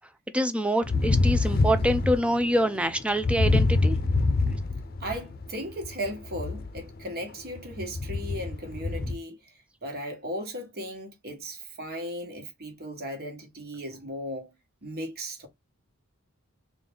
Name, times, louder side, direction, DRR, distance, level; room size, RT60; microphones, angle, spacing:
voice 1, 0.3-4.0, equal, 5° right, 0.4 m, -25 dB
sound 1, 0.8-5.5 5.8-7.0 7.6-9.1, left 3 dB, 45° left, 0.6 m, -25 dB
voice 2, 5.0-9.4 9.8-14.5 14.8-15.5, equal, 45° right, 1.4 m, -36 dB
3.8 x 2.5 x 3.4 m
head